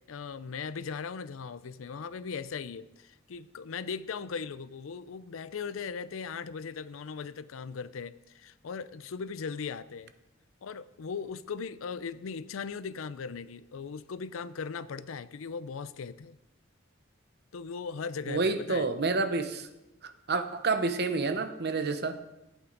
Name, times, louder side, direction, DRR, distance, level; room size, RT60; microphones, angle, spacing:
voice 1, 0.1-10.1 10.6-16.4 17.5-18.9, left 5 dB, 85° left, 16 dB, 0.5 m, -38 dB
voice 2, 18.3-19.7 20.0-22.2, right 3 dB, 55° right, 9 dB, 0.8 m, -29 dB
13.0 x 8.5 x 3.9 m, 0.97 s
head